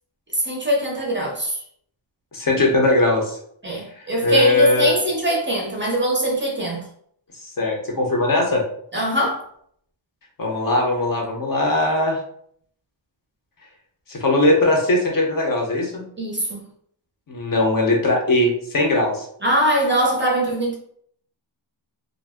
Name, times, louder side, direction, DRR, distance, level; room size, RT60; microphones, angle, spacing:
voice 1, 0.3-1.6 3.6-6.8 8.9-9.4 16.2-16.6 19.4-20.8, right 1 dB, 25° right, -1 dB, 0.5 m, -22 dB
voice 2, 2.3-3.4 4.2-5.0 7.6-8.6 10.4-12.2 14.1-16.0 17.3-19.3, left 2 dB, 45° left, 0 dB, 0.6 m, -19 dB
2.5 x 2.1 x 3.4 m, 0.65 s
wide cardioid pair, 165°, 47 cm